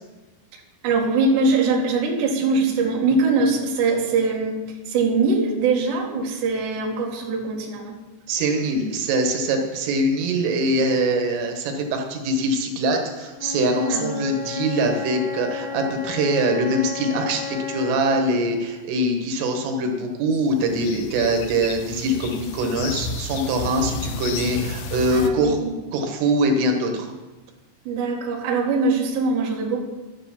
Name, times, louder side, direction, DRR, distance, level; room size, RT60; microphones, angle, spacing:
voice 1, 0.8-8.0 13.9-14.1 25.1-25.8 27.9-29.8, right 3 dB, 65° right, -1 dB, 3.8 m, -22 dB
voice 2, 8.3-25.6 25.9-27.1, right 1 dB, 90° right, 3 dB, 4.0 m, -23 dB
Wind instrument woodwind instrument, 13.3-18.3, left 8 dB, 55° left, 2.6 m, -32 dB
sound 1, 20.3-25.3, left 4 dB, 75° left, 2.9 m, -32 dB
11.0 x 10.0 x 7.2 m, 1.2 s
omnidirectional pair, 5.5 m